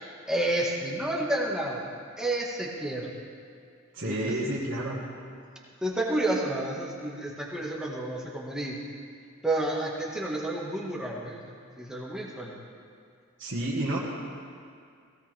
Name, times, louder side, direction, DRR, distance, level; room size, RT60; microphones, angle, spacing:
voice 1, 0.3-1.8 2.2-3.1 4.1-4.4 5.8-8.8 9.4-12.6, right 1 dB, 5° right, -3 dB, 1.8 m, -30 dB
voice 2, 3.9-5.0 13.4-14.0, right 1 dB, 60° right, -6 dB, 1.8 m, -30 dB
17.5 x 17.0 x 3.6 m, 2.3 s
head